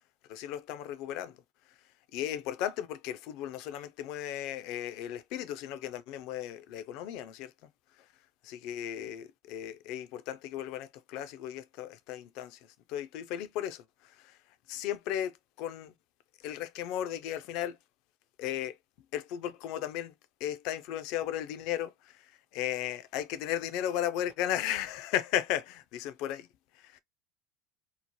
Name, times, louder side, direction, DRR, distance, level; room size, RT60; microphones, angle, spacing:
voice 1, 0.3-1.4 2.1-7.5 8.4-12.6 12.9-13.8 14.2-14.4 14.7-15.9 16.4-17.8 18.4-18.8 19.1-20.1 20.4-22.2 22.5-26.5 26.8-27.0, left 11 dB, 60° left, 0.4 m, -35 dB
2.8 x 2.1 x 2.8 m
hypercardioid pair, 85°, 0 cm